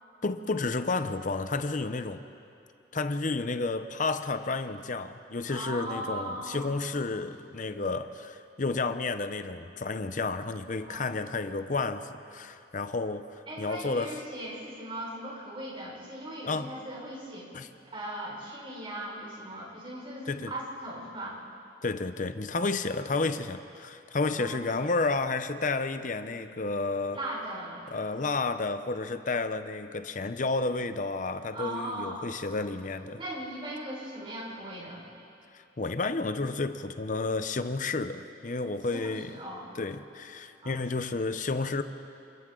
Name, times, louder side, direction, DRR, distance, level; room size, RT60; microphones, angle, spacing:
voice 1, 0.2-2.2 2.9-14.2 16.5-16.7 17.5-17.7 20.3-20.5 21.8-27.2 27.9-33.2 35.8-39.3 39.8-41.8, left 3 dB, 45° left, 10 dB, 0.8 m, -31 dB
voice 2, 5.5-6.7 10.8-11.2 13.5-17.5 17.9-21.4 24.3-24.6 27.1-27.8 31.5-32.2 33.2-35.0 39.0-39.7 40.6-40.8, right 1 dB, 30° right, -5 dB, 5.6 m, -38 dB
28.0 x 26.5 x 3.9 m, 2.6 s
head